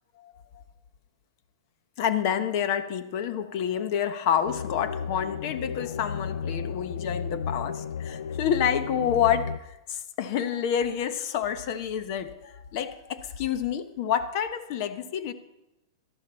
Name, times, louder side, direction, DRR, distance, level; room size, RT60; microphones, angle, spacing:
voice 1, 0.2-0.6 2.0-15.3, left 9 dB, 50° left, 10 dB, 1.0 m, -28 dB
sound 1, 4.4-9.6, left 6 dB, 85° left, 0.3 m, -33 dB
12.5 x 11.5 x 4.3 m, 0.93 s
hypercardioid pair, 135°, 2 cm